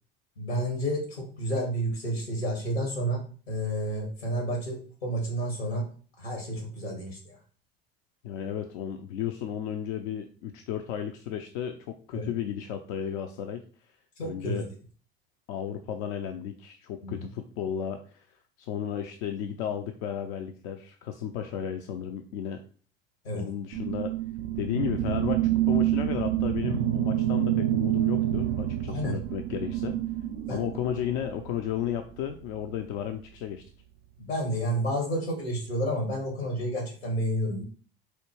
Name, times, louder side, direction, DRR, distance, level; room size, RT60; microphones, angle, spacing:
voice 1, 0.4-5.8 6.2-7.4 12.1-12.3 14.2-14.6 17.0-17.2 23.2-23.4 28.9-29.2 30.5-30.6 34.2-37.6, equal, 80° left, 0 dB, 1.7 m, -30 dB
voice 2, 8.2-13.6 14.2-14.7 15.5-18.2 18.6-22.6 23.3-24.1 24.6-30.0 30.5-33.6, left 9 dB, 60° left, 6 dB, 0.5 m, -34 dB
sound 1, 23.7-31.5, right 13 dB, 65° right, 0.5 m, -27 dB
4.3 x 2.3 x 3.1 m, 0.41 s
hypercardioid pair, 70°, 31 cm